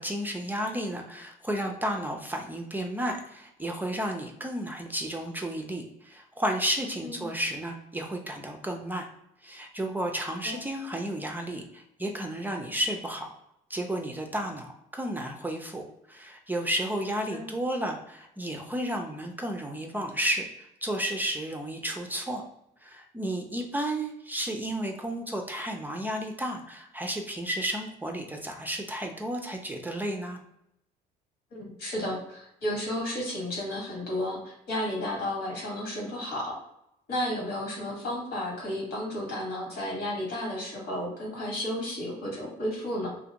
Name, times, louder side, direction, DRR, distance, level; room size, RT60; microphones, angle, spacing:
voice 1, 0.0-9.1 9.4-13.3 13.7-22.4 22.8-30.4, right 1 dB, 10° right, 2 dB, 0.4 m, -32 dB
voice 2, 31.5-36.6 37.1-43.1, left 1 dB, 75° left, -2 dB, 1.4 m, -32 dB
2.4 x 2.4 x 2.8 m, 0.80 s
cardioid pair, 110°, 17 cm